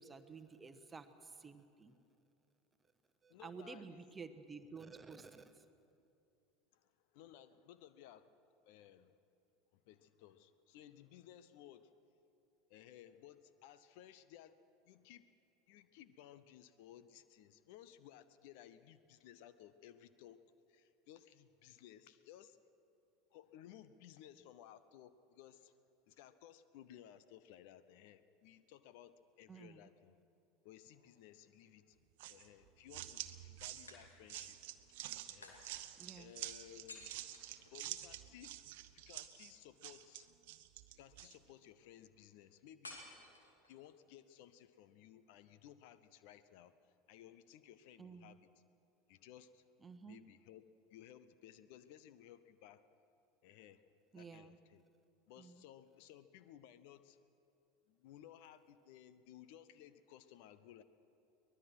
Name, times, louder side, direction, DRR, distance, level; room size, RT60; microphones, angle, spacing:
voice 1, 0.0-1.9 3.2-5.6 29.5-29.9 36.0-36.3 48.0-48.4 49.8-50.2 54.1-54.6 55.4-55.6, right 4 dB, 15° right, 10 dB, 1.2 m, -52 dB
voice 2, 3.3-4.1 6.7-8.3 8.6-9.1 9.7-11.9 12.7-14.5 14.9-15.3 15.7-20.4 20.7-22.6 23.3-25.8 26.1-30.2 30.6-32.0 32.3-34.6 34.9-35.0 35.3-35.6 36.1-37.2 37.7-38.6 38.9-40.3 40.9-43.0 43.7-48.5 49.1-49.6 50.1-52.8 53.4-53.8 54.1-54.8 55.3-57.2 57.9-60.8, left 11 dB, 55° left, 14 dB, 0.8 m, -59 dB
sound 1, 30.8-31.8 33.9-34.6 35.4-38.3 42.8-43.9, left 2 dB, 75° left, 2.6 m, -57 dB
sound 2, 32.2-41.4, right 15 dB, 55° right, 0.9 m, -48 dB
23.5 x 19.5 x 6.1 m, 2.7 s
figure-of-eight pair, 75°, 0 cm